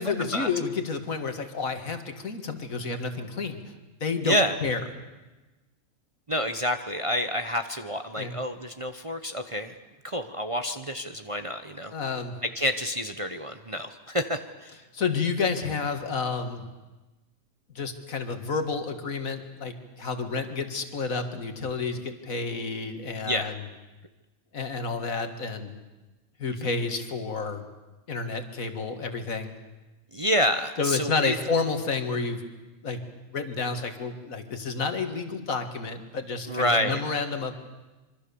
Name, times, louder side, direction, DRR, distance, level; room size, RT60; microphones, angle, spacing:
voice 1, 0.0-3.6 4.0-4.8 8.2-8.4 11.9-12.4 14.9-16.6 17.8-23.6 24.5-25.8 26.4-27.6 28.1-29.5 30.8-32.4 32.8-33.0 33.3-37.5, left 4 dB, 70° left, 7 dB, 2.2 m, -30 dB
voice 2, 4.2-4.5 6.3-9.7 10.0-11.9 12.5-14.8 23.2-23.5 26.5-26.7 30.1-31.4 36.5-37.0, equal, 25° right, 7 dB, 0.9 m, -28 dB
26.0 x 24.0 x 7.0 m, 1.1 s
omnidirectional pair, 1.5 m